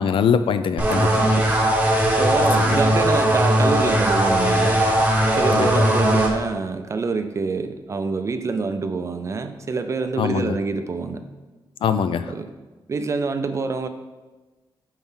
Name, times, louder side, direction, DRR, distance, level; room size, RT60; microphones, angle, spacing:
voice 1, 0.0-1.2 2.6-2.8 5.5-5.8 10.2-10.5 11.8-12.3, left 7 dB, 75° left, 11 dB, 0.4 m, -22 dB
sound 1, 0.8-6.3, right 1 dB, 15° right, 1.0 m, -19 dB
voice 2, 1.1-1.5 2.2-11.2 12.3-12.5 12.9-13.9, right 4 dB, 35° right, 8 dB, 0.4 m, -26 dB
9.6 x 4.5 x 3.7 m, 1.2 s
wide cardioid pair, 175°, 9 cm